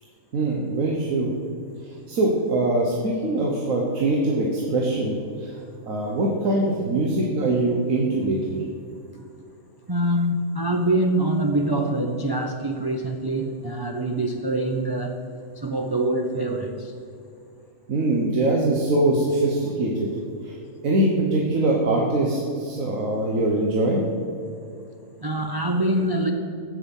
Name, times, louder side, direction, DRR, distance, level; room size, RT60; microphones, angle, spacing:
voice 1, 0.3-1.3 1.8-5.5 5.9-8.6 17.9-20.1 20.4-20.6 20.8-24.0, right 2 dB, 70° right, -1 dB, 1.5 m, -23 dB
voice 2, 9.9-15.2 15.6-16.9 25.2-26.3, right 1 dB, 35° right, 2 dB, 0.4 m, -24 dB
15.0 x 6.3 x 5.5 m, 2.5 s
omnidirectional pair, 1.5 m